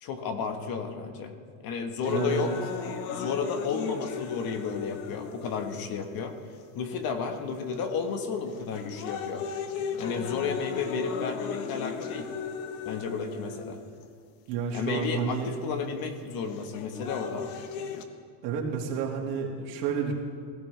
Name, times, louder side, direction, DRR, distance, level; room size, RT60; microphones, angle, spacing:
voice 1, 0.0-1.3 1.6-2.6 3.1-6.4 6.7-9.5 10.0-12.3 12.8-13.8 14.7-17.5, left 5 dB, 45° left, 6 dB, 1.5 m, -32 dB
sound 1, 2.0-6.1 6.8-6.9 7.7-8.0 8.5-14.0 15.0-15.1 16.5-18.0, left 6 dB, 70° left, 1.4 m, -36 dB
voice 2, 2.1-2.6 14.5-15.5 18.4-20.1, right 6 dB, 75° right, -1 dB, 2.9 m, -30 dB
18.0 x 15.5 x 3.4 m, 2.1 s
supercardioid pair, 140°, 50 cm